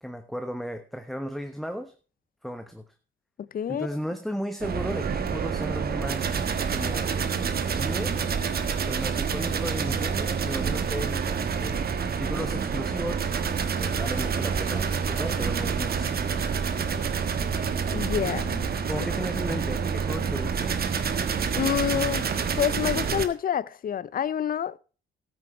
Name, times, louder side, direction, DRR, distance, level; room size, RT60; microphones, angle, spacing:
voice 1, 0.0-1.9 2.4-2.9 3.7-6.3 6.7-7.1 7.6-8.3 8.8-11.9 12.2-13.2 13.7-16.3 18.9-20.8, equal, ahead, 1.1 m, -35 dB
voice 2, 3.4-3.9 17.9-18.6 21.5-22.3 22.6-24.8, left 9 dB, 45° left, 0.6 m, -27 dB
sound 1, 4.6-23.3, right 6 dB, 50° right, 1.4 m, -28 dB
13.0 x 8.8 x 4.4 m
cardioid pair, 90°, 20 cm